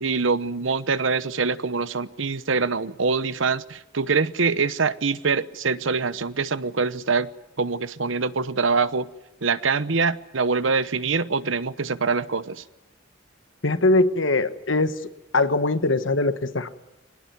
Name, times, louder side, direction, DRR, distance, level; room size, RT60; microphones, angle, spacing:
voice 1, 0.0-7.3 7.6-9.1 9.4-12.6, right 4 dB, 75° right, 0.9 m, -24 dB
voice 2, 13.6-14.9 15.3-16.7, left 2 dB, 75° left, 1.3 m, -21 dB
23.5 x 20.0 x 9.5 m
head